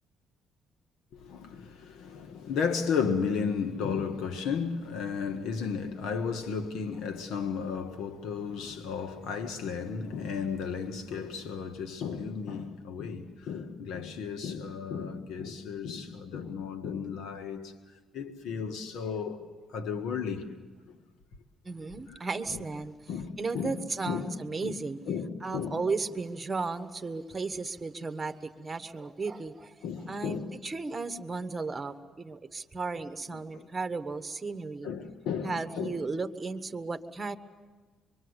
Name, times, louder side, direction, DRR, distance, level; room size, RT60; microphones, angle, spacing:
voice 1, 1.1-17.7 18.1-19.4 19.7-20.5 22.1-22.2 22.5-22.6 23.1-23.7 24.1-24.3 24.6-24.8 25.1-25.7 29.8-30.5 33.5-33.7 34.8-36.0, left 6 dB, 85° left, 1.5 m, -34 dB
voice 2, 21.6-22.9 23.4-25.0 25.4-29.7 30.1-34.9 35.4-37.4, right 4 dB, 20° right, 1.4 m, -35 dB
25.5 x 23.5 x 8.1 m
cardioid pair, 110°, 0 cm